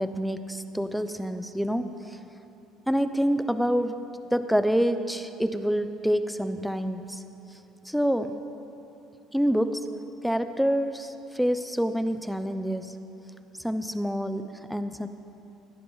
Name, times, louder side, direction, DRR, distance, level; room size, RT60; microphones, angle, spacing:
voice 1, 0.0-2.2 2.9-4.0 4.3-7.2 7.8-8.4 9.3-9.9 10.2-13.0 13.6-15.1, equal, ahead, 10 dB, 0.7 m, -27 dB
17.0 x 11.0 x 4.0 m, 2.9 s
supercardioid pair, 80°, 0 cm